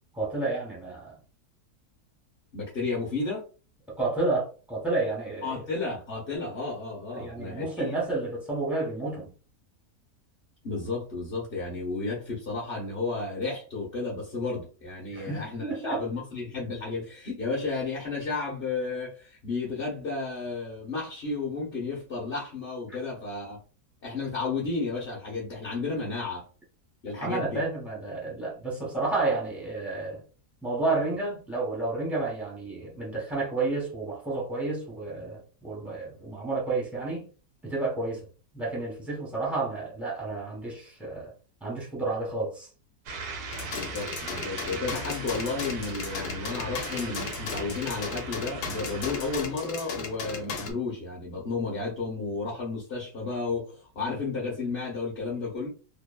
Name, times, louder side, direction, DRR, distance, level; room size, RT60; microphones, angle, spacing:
voice 1, 0.1-1.1 3.9-5.6 7.1-9.3 15.1-16.0 27.2-30.2 30.6-37.2 37.6-38.3 38.5-41.3 41.6-42.7, right 3 dB, ahead, 0.5 m, -31 dB
voice 2, 2.5-3.4 5.4-7.9 10.6-23.6 24.0-26.5 27.0-27.6 43.7-55.7, left 3 dB, 45° left, 0.8 m, -32 dB
sound 1, 43.1-49.5, right 3 dB, 85° right, 1.2 m, -39 dB
sound 2, 43.5-50.7, left 5 dB, 85° left, 1.2 m, -36 dB
2.9 x 2.1 x 2.2 m
omnidirectional pair, 1.7 m